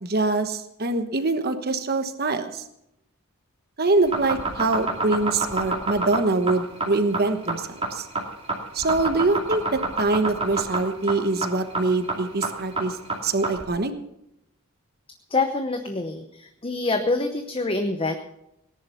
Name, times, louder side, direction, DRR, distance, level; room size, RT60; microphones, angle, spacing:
voice 1, 0.0-2.6 3.8-8.1 8.7-13.0 13.2-13.9, right 3 dB, 45° right, 8 dB, 1.2 m, -24 dB
sound 1, 4.0-13.6, right 3 dB, 25° right, 2.5 m, -27 dB
voice 2, 15.3-18.1, left 3 dB, 25° left, 6 dB, 0.9 m, -26 dB
18.5 x 10.5 x 5.7 m, 0.81 s
head